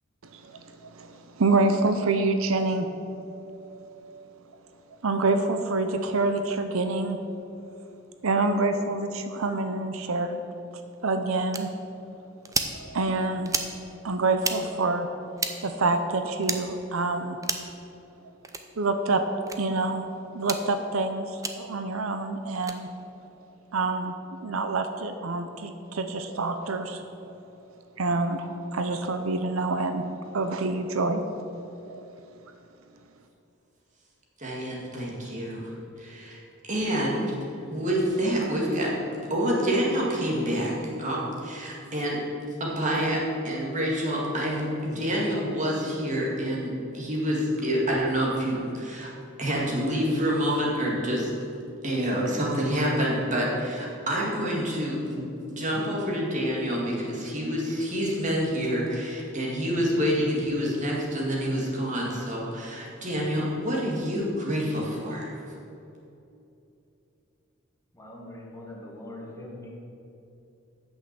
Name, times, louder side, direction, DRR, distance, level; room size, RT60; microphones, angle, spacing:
voice 1, 0.3-4.4 5.0-7.2 8.2-10.4 11.0-11.7 12.8-13.5 14.0-15.1 15.6-17.4 18.8-19.2 19.6-22.9 23.7-24.1 24.4-27.0 28.0-30.1 30.3-31.2 31.9-32.0, right 3 dB, 85° right, 7 dB, 0.7 m, -27 dB
sound 1, 11.5-11.6 12.4-12.7 13.5-13.7 14.4-14.6 15.4-15.5 16.4-16.6 17.4-17.7 18.4-18.6 19.5-19.6 20.4-20.6 21.4-21.5 22.5-22.8, right 4 dB, 15° right, 0.6 m, -30 dB
voice 2, 34.4-37.3 37.7-38.9 39.3-42.2 42.6-49.1 49.4-51.3 51.8-55.2 55.5-65.4, equal, 35° right, -3 dB, 2.2 m, -27 dB
voice 3, 67.9-69.7, left 1 dB, 15° left, -2 dB, 1.4 m, -42 dB
8.6 x 6.4 x 7.6 m, 2.8 s
head